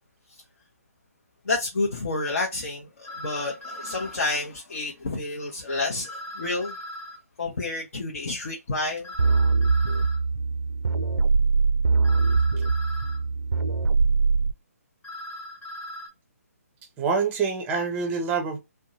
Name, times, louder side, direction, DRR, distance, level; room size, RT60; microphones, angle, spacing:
voice 1, 1.4-6.7 7.4-9.1, left 3 dB, 60° left, 0.8 m, -29 dB
sound 1, 3.0-4.2 6.0-7.2 9.0-10.2 12.0-13.2 15.0-16.1, left 1 dB, 10° left, 1.0 m, -39 dB
sound 2, 9.2-14.5, right 4 dB, 85° right, 0.3 m, -22 dB
voice 2, 17.0-18.6, right 5 dB, 15° right, 0.6 m, -26 dB
2.6 x 2.2 x 2.7 m
figure-of-eight pair, 145°, 9 cm